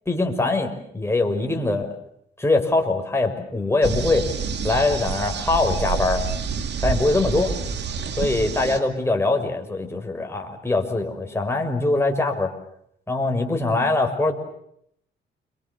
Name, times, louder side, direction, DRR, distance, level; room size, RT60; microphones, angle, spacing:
voice 1, 0.1-1.9 2.4-4.3 4.6-6.2 6.8-7.5 8.2-12.5 13.1-14.3, left 2 dB, 10° left, 3 dB, 6.2 m, -22 dB
sound 1, 3.8-8.8, right 5 dB, 60° right, 2.9 m, -28 dB
29.5 x 25.0 x 7.3 m, 0.72 s
cardioid pair, 90°, 20 cm